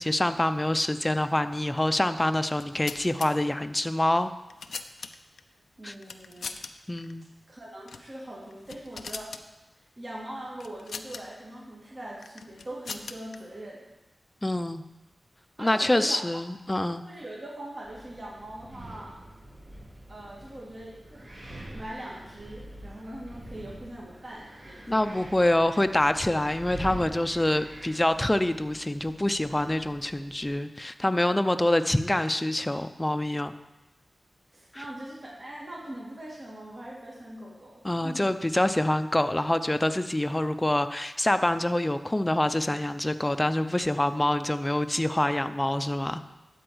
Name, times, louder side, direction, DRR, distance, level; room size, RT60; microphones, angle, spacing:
voice 1, 0.0-4.3 5.8-5.9 6.9-7.3 14.4-14.8 15.6-17.0 24.9-33.5 34.7-34.8 37.8-46.2, left 1 dB, 20° left, 10 dB, 0.7 m, -26 dB
sound 1, 2.5-3.3 4.2-5.4 6.0-6.7 7.0-7.1 7.8-8.1 8.5-9.4 10.6-11.2 12.2-13.4, left 5 dB, 90° left, 0.5 m, -40 dB
voice 2, 5.8-6.6 7.5-9.4 9.8-13.9 15.6-16.2 17.0-19.2 20.1-21.3 21.7-25.2 34.5-38.3, right 1 dB, 45° right, -5 dB, 2.6 m, -41 dB
Wind, 17.8-30.5, right 1 dB, 60° right, 3.6 m, -45 dB
12.5 x 4.6 x 7.9 m, 1.1 s
cardioid pair, 55°, 0 cm